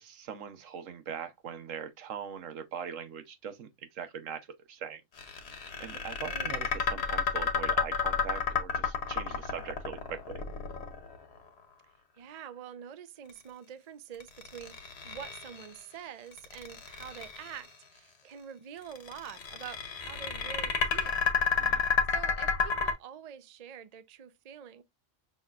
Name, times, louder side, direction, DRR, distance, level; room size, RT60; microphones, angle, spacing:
voice 1, 0.0-5.0 5.8-10.4 21.6-21.8, right 7 dB, 80° right, 1.2 m, -41 dB
sound 1, 5.2-11.4 14.2-15.8 16.3-17.7 18.9-22.9, left 5 dB, 55° left, 1.1 m, -31 dB
voice 2, 12.2-21.2 22.1-24.8, right 8 dB, 45° right, 0.5 m, -46 dB
6.4 x 3.0 x 2.4 m
omnidirectional pair, 1.3 m